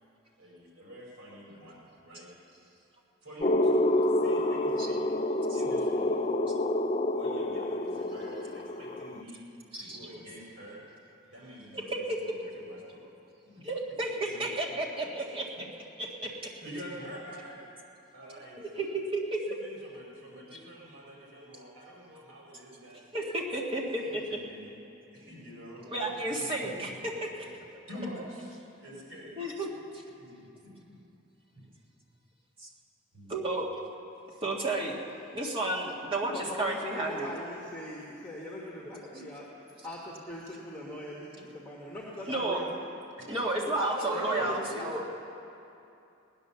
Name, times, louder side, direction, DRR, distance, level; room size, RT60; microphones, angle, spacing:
voice 1, 0.4-2.3 3.2-5.1 5.5-6.2 7.1-9.5 9.8-10.8 11.3-13.1 13.4-13.6 14.0-14.8 15.2-15.3 16.2-16.3 16.6-17.6 18.1-18.6 19.5-23.0 23.7-24.7 25.1-27.5 27.9-29.4 30.2-31.0 33.1-33.3 43.2-43.7 44.0-44.5, equal, 80° right, -4 dB, 4.4 m, -46 dB
sound 1, 3.4-9.2, left 1 dB, 30° left, 0.4 m, -28 dB
voice 2, 13.6-15.7 16.0-16.5 18.6-19.4 23.1-24.4 25.9-26.9 27.4-27.5 29.4-29.7 29.9-30.0 32.6-32.7 33.3-33.7 34.4-35.0 35.3-37.4 42.3-42.6 43.3-45.0, right 2 dB, 25° right, -2 dB, 1.7 m, -32 dB
voice 3, 36.2-39.5 39.8-42.8 43.8-44.9, left 1 dB, 5° left, -5 dB, 1.6 m, -40 dB
18.0 x 10.5 x 6.9 m, 2.8 s
head